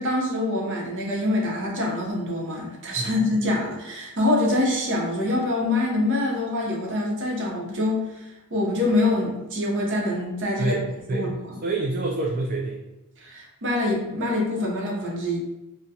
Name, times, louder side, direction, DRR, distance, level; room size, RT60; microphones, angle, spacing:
voice 1, 0.0-8.1 8.5-10.8 11.1-11.6 13.2-15.4, left 2 dB, 60° right, -2 dB, 0.8 m, -25 dB
voice 2, 10.6-11.3 11.6-12.8, right 2 dB, 40° right, -2 dB, 0.4 m, -27 dB
3.8 x 2.1 x 2.7 m, 1.0 s
head